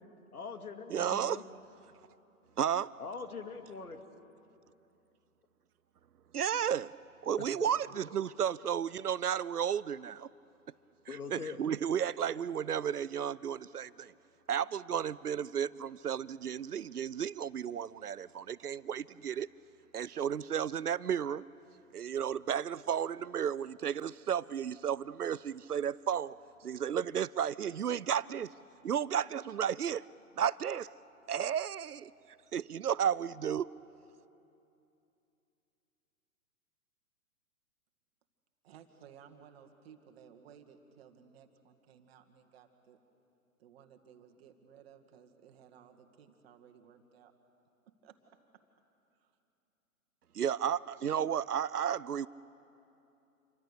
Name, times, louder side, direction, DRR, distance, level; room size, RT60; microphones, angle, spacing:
voice 1, 0.3-1.4 3.0-4.0 7.4-7.7 11.1-11.6, left 5 dB, 75° left, 7 dB, 2.2 m, -42 dB
voice 2, 0.9-1.4 2.6-2.9 6.3-6.9 7.2-10.3 11.3-14.1 14.5-19.5 19.9-21.4 21.9-26.4 26.6-28.5 28.8-30.0 30.4-30.9 31.3-32.1 32.5-33.7 50.3-52.3, right 8 dB, 85° right, 20 dB, 0.6 m, -33 dB
voice 3, 38.6-43.0 43.6-47.3 48.0-48.2 49.2-49.3, right 8 dB, 40° right, 5 dB, 2.0 m, -58 dB
28.0 x 24.0 x 6.8 m, 2.8 s
figure-of-eight pair, 120°, 44 cm